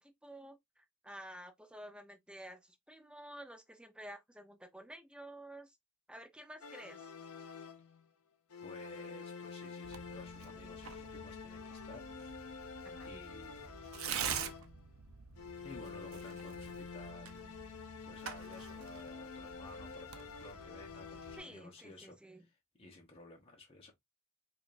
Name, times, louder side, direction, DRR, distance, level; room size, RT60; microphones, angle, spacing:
voice 1, 0.0-5.8 6.1-7.1 12.8-13.1 21.4-22.5, right 1 dB, 5° right, 0.7 m, -51 dB
sound 1, 6.6-8.1 8.5-14.9 15.4-21.8, left 5 dB, 85° left, 0.6 m, -48 dB
voice 2, 8.6-12.1 13.0-13.7 15.6-17.3 18.0-23.9, left 2 dB, 25° left, 0.9 m, -54 dB
Tearing, 9.8-21.4, right 7 dB, 75° right, 0.6 m, -46 dB
4.9 x 2.5 x 2.5 m
head